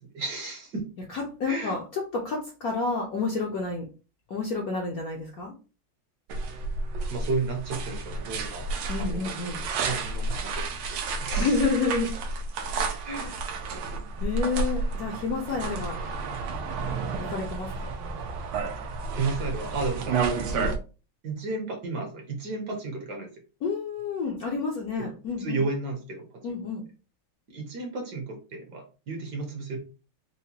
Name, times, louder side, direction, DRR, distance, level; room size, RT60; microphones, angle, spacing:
voice 1, 0.0-0.9 1.5-1.8 7.1-9.2 9.8-11.5 13.0-13.3 19.2-20.3 20.5-20.7 21.2-23.3 25.0-25.1 25.4-26.5 27.5-29.8, right 3 dB, 60° right, 2 dB, 1.3 m, -33 dB
voice 2, 1.1-3.9 4.3-5.5 8.9-9.6 11.4-12.2 13.2-13.3 14.2-16.0 17.3-17.7 20.5-20.7 23.6-25.6 26.4-26.8, left 4 dB, 65° left, -1 dB, 0.9 m, -29 dB
sound 1, 6.3-20.8, right 4 dB, 90° right, 1.5 m, -31 dB
4.7 x 2.1 x 2.8 m, 0.33 s
omnidirectional pair, 2.3 m